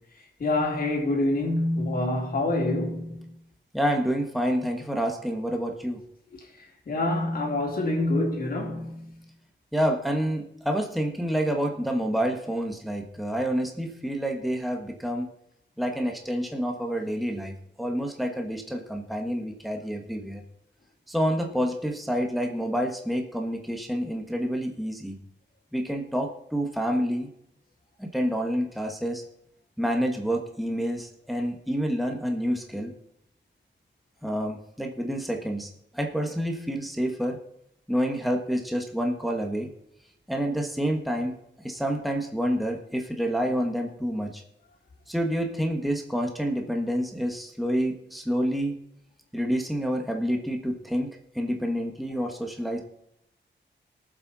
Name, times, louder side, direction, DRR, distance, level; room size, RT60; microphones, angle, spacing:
voice 1, 0.4-3.3 6.9-9.1, left 2 dB, 50° left, 2.7 m, -26 dB
voice 2, 3.7-6.0 9.7-15.3 15.8-20.4 21.1-25.2 25.7-27.3 28.0-29.2 29.8-32.9 34.2-35.7 35.9-37.4 37.9-39.7 40.3-41.3 41.6-44.4 45.1-48.7 49.3-51.1 51.3-52.8, equal, ahead, 1.5 m, -28 dB
22.5 x 7.6 x 4.2 m
wide cardioid pair, 170°, 19 cm